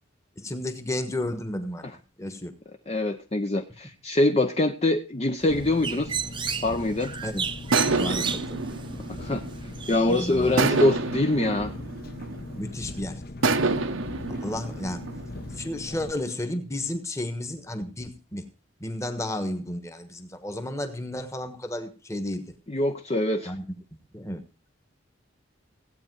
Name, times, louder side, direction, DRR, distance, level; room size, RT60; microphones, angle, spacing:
voice 1, 0.4-2.5 7.2-7.5 8.0-8.6 10.1-10.6 12.6-13.2 14.4-15.0 15.5-18.5 18.8-22.5 23.4-23.6 24.1-24.4, left 1 dB, 15° left, 9 dB, 1.3 m, -32 dB
voice 2, 2.9-6.1 6.6-7.1 9.1-11.7 22.7-23.5, left 2 dB, 30° left, 6 dB, 0.7 m, -24 dB
Bird, 5.4-10.8, right 6 dB, 25° right, 0.8 m, -34 dB
Engine, 5.5-16.1, left 2 dB, 45° left, 1.0 m, -39 dB
sound 1, 7.7-10.0 10.6-12.7 13.4-15.7, right 3 dB, 75° right, 1.0 m, -28 dB
16.5 x 8.7 x 4.7 m, 0.33 s
head